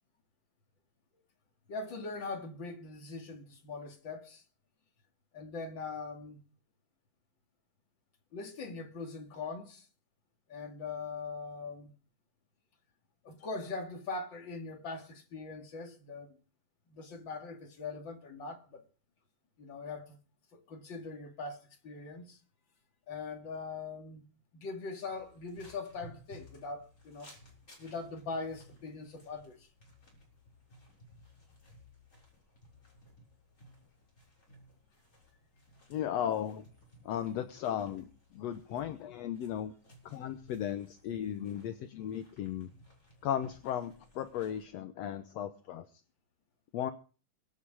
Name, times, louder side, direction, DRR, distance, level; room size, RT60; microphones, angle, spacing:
voice 1, 1.7-4.4 5.3-6.4 8.3-9.9 10.5-11.9 13.2-16.4 16.9-18.8 19.6-20.2 20.7-22.4 23.1-24.3 24.5-27.3 27.8-29.7 41.5-41.6, left 3 dB, 40° left, 2.8 m, -41 dB
sound 1, 25.0-44.7, equal, 20° left, 7.1 m, -59 dB
voice 2, 35.9-36.6 37.0-39.7 40.0-42.7 43.2-45.9 46.7-46.9, left 10 dB, 65° left, 1.8 m, -36 dB
24.0 x 9.1 x 4.9 m
omnidirectional pair, 3.8 m